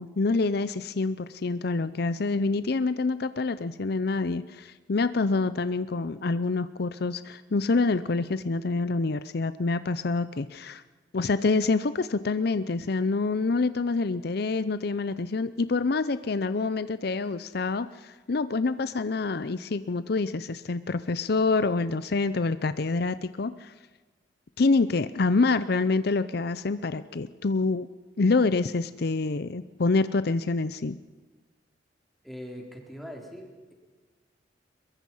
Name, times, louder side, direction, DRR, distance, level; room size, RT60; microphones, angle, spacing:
voice 1, 0.0-10.8 11.1-23.7 24.6-27.9 28.2-31.0, left 3 dB, 60° left, 14 dB, 0.6 m, -26 dB
voice 2, 32.2-33.7, equal, ahead, 0 dB, 3.8 m, -41 dB
22.5 x 22.5 x 5.6 m, 1.4 s
head